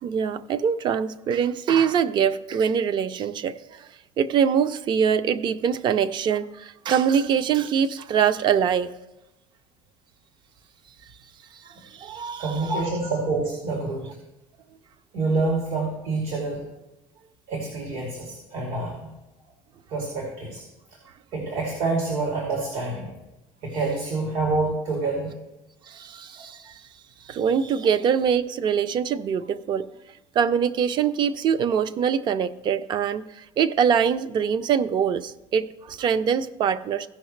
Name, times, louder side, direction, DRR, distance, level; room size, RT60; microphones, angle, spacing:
voice 1, 0.0-3.9 4.2-8.9 11.6-12.8 25.9-26.8 27.2-29.9 30.3-37.1, right 7 dB, 40° right, 0.5 m, -24 dB
voice 2, 12.4-14.1 15.1-16.6 17.5-19.1 19.9-20.6 21.3-23.1 23.6-25.3, right 3 dB, 80° right, 2.8 m, -27 dB
17.0 x 5.6 x 3.2 m
cardioid pair, 140°, 12 cm